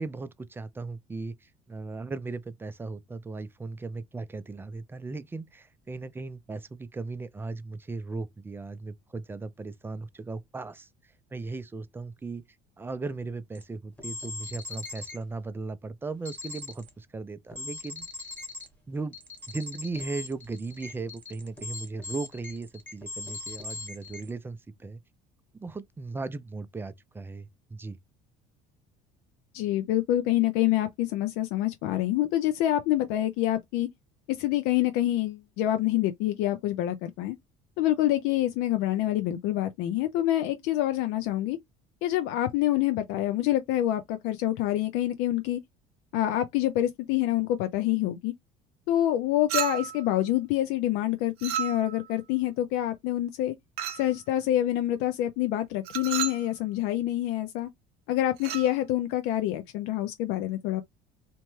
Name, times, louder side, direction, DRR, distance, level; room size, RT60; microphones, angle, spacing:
voice 1, 0.0-10.9 11.3-12.4 12.8-18.1 18.9-19.2 19.5-25.0 25.5-28.0, right 3 dB, 15° right, 0.3 m, -37 dB
sound 1, 13.6-13.7 14.0-15.2 16.3-16.9 17.5-18.7 19.1-24.3, left 3 dB, 10° left, 1.1 m, -40 dB
voice 2, 29.5-33.9 34.4-37.4 37.8-41.6 42.0-45.6 46.1-48.3 48.9-53.5 53.9-57.7 58.1-60.8, left 13 dB, 80° left, 0.4 m, -26 dB
Chink clink, 49.5-50.1 51.4-52.1 53.8-54.1 55.8-56.5 58.4-58.7, right 10 dB, 70° right, 0.6 m, -32 dB
2.9 x 2.1 x 3.1 m
supercardioid pair, 105°, 17 cm